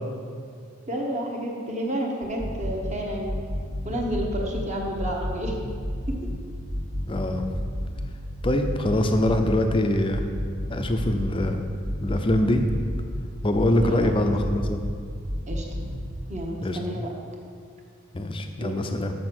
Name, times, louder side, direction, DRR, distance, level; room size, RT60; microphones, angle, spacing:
voice 1, 0.9-3.3 3.8-5.6 6.1-6.3 13.8-14.3 15.5-15.6 16.3-17.1 18.6-18.8, equal, 30° right, 0 dB, 1.1 m, -30 dB
sound 1, 2.2-3.0 3.3-4.7 5.0-6.4 6.7-8.1 8.4-9.8 10.1-11.5 11.8-13.2 13.6-15.0 15.3-15.9, equal, 75° right, 1.8 m, -30 dB
voice 2, 7.1-7.4 8.4-10.2 10.7-11.6 12.0-12.7 13.4-14.8 16.6-16.8 18.1-19.1, left 1 dB, 25° left, 6 dB, 0.5 m, -23 dB
6.6 x 6.5 x 6.1 m, 2.2 s
head